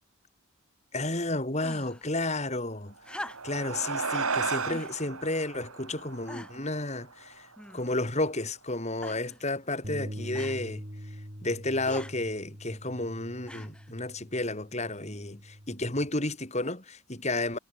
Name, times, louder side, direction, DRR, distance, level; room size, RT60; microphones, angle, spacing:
voice 1, 0.9-2.9 3.4-7.5 7.7-10.8 11.4-17.6, left 2 dB, 30° left, 3.0 m, -32 dB
sound 1, 1.6-2.1 3.0-3.7 4.7-5.0 5.7-5.8 6.3-6.7 7.6-8.1 9.0-9.4 10.3-10.6 11.8-12.2 13.5-13.9 15.0-15.1, left 1 dB, 5° left, 7.7 m, -43 dB
sound 2, 3.0-7.7, right 5 dB, 80° right, 3.1 m, -34 dB
Bass guitar, 9.8-16.1, equal, 35° right, 7.9 m, -43 dB
head